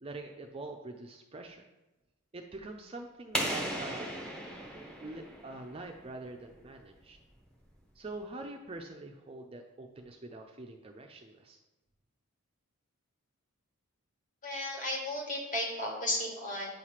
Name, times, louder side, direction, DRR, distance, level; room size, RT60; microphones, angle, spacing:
voice 1, 0.0-1.6 2.3-4.1 5.0-7.2 8.0-11.6, right 2 dB, 25° right, 3 dB, 0.4 m, -44 dB
sound 1, 3.3-6.0, right 1 dB, 5° left, 0.8 m, -36 dB
voice 2, 14.4-16.7, left 1 dB, 35° left, -1 dB, 1.6 m, -34 dB
8.8 x 3.2 x 5.7 m, 1.0 s
head